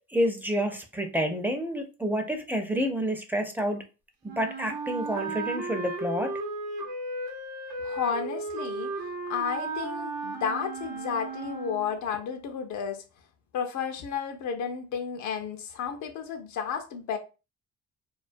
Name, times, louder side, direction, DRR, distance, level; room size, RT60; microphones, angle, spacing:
voice 1, 0.1-3.8 4.4-6.4, equal, 5° right, 0.4 m, -29 dB
Wind instrument woodwind instrument, 4.3-12.0, right 3 dB, 85° right, 0.7 m, -35 dB
voice 2, 7.8-8.9 9.3-13.0 13.5-17.2, left 7 dB, 70° left, 0.5 m, -32 dB
2.3 x 2.2 x 2.5 m
cardioid pair, 90°, 30 cm